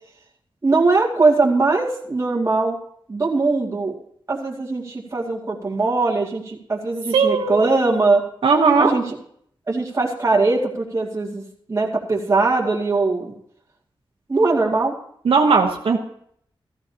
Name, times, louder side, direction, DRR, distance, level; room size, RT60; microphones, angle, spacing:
voice 1, 0.6-2.8 3.1-3.9 4.3-8.2 8.8-9.0 9.7-11.4 11.7-13.3 14.3-14.9, right 3 dB, 35° right, -2 dB, 2.2 m, -20 dB
voice 2, 7.1-7.7 8.4-8.9 15.2-16.0, right 5 dB, 85° right, 2 dB, 1.0 m, -17 dB
15.0 x 14.0 x 2.8 m, 0.67 s
wide cardioid pair, 110°, 9 cm